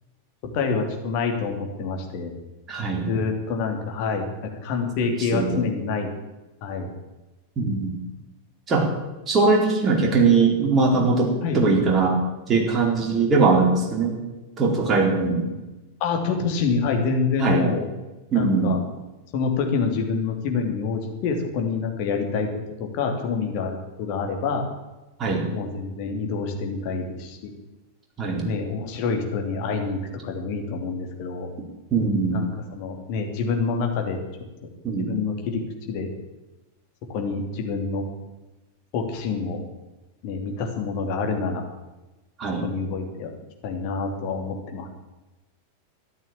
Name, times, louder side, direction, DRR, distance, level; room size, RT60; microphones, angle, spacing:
voice 1, 0.5-2.4 3.1-6.1 6.6-6.9 11.4-11.6 16.0-17.9 18.3-18.8 19.3-24.7 25.5-27.5 28.4-31.5 32.3-34.2 35.1-36.1 37.1-38.0 38.9-39.6 40.2-41.6 42.6-43.3 43.6-44.9, left 4 dB, 45° left, 3 dB, 3.1 m, -27 dB
voice 2, 2.7-3.1 5.2-5.6 7.6-8.0 8.7-8.9 9.3-12.2 12.5-14.2 14.6-15.5 17.4-17.6 18.3-18.8 25.2-25.5 28.2-28.5 31.9-32.4 34.8-35.1 42.4-42.7, right 4 dB, 25° right, 0 dB, 4.2 m, -21 dB
13.5 x 11.0 x 8.9 m, 1.1 s
figure-of-eight pair, 90°, 0 cm